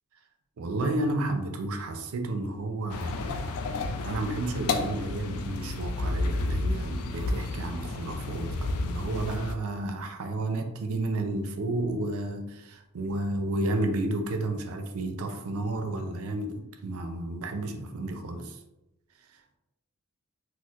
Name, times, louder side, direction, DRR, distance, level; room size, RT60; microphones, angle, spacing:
voice 1, 0.6-3.3 4.0-18.6, right 2 dB, 70° right, 5 dB, 0.4 m, -32 dB
sound 1, 2.9-9.5, left 2 dB, 75° left, 0.3 m, -31 dB
4.2 x 2.1 x 2.4 m, 0.94 s
head